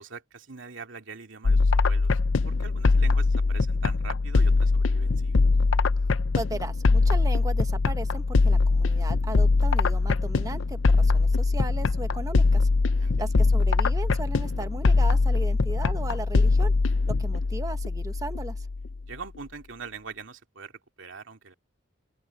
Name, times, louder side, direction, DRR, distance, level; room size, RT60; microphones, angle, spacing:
voice 1, 0.0-2.2 2.4-5.5 13.0-13.3 19.1-20.7 21.0-21.5, right 5 dB, 85° right, 2.3 m, -43 dB
sound 1, 1.4-19.1, left 3 dB, 85° left, 0.6 m, -22 dB
voice 2, 6.3-12.7 13.2-16.7 17.1-18.5, right 2 dB, 20° right, 1.0 m, -36 dB
open air
head